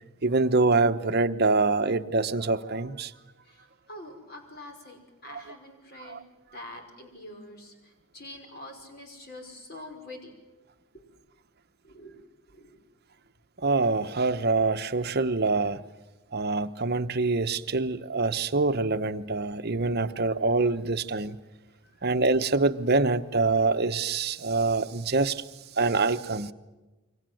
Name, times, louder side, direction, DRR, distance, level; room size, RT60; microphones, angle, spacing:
voice 1, 0.2-3.1 6.1-6.2 13.6-15.8 16.3-21.4 22.0-25.4 25.8-26.5, right 3 dB, 45° right, 0.9 m, -25 dB
voice 2, 3.4-6.2 6.5-10.3 10.9-11.1 11.8-12.2 12.5-12.8 21.8-22.0, left 1 dB, 45° left, 5.4 m, -45 dB
28.0 x 24.0 x 7.8 m
head